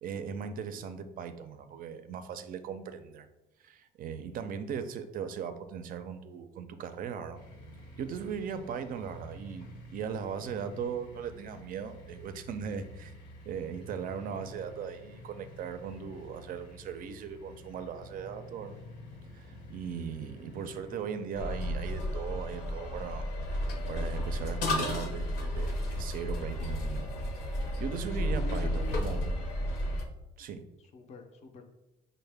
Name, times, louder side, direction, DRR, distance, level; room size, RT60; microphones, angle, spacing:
voice 1, 0.0-3.3 3.6-7.4 8.0-13.1 13.5-18.8 19.3-23.3 23.9-27.2 27.5-29.4 30.4-30.6, right 7 dB, 55° right, 9 dB, 0.4 m, -38 dB
sound 1, 7.3-21.3, left 1 dB, 90° left, 1.1 m, -50 dB
sound 2, 21.3-30.1, left 1 dB, 70° left, 0.8 m, -32 dB
voice 2, 28.1-29.3 30.9-31.6, left 5 dB, 40° left, 5 dB, 0.5 m, -44 dB
5.3 x 2.1 x 3.3 m, 0.96 s
cardioid pair, 110°, 17 cm